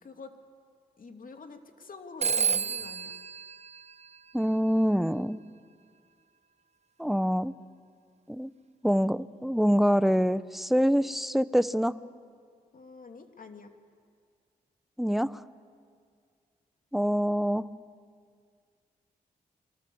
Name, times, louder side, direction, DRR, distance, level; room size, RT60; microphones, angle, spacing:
voice 1, 0.0-0.3 1.0-3.1 12.7-13.7, left 4 dB, 55° left, 5 dB, 2.9 m, -46 dB
Telephone, 2.2-4.7, right 6 dB, 40° right, 0.8 m, -31 dB
voice 2, 4.3-5.4 7.0-7.5 8.3-8.5 8.8-11.9 15.0-15.4 16.9-17.7, equal, ahead, 14 dB, 1.1 m, -25 dB
29.0 x 24.5 x 7.2 m, 2.1 s
supercardioid pair, 45°, 17 cm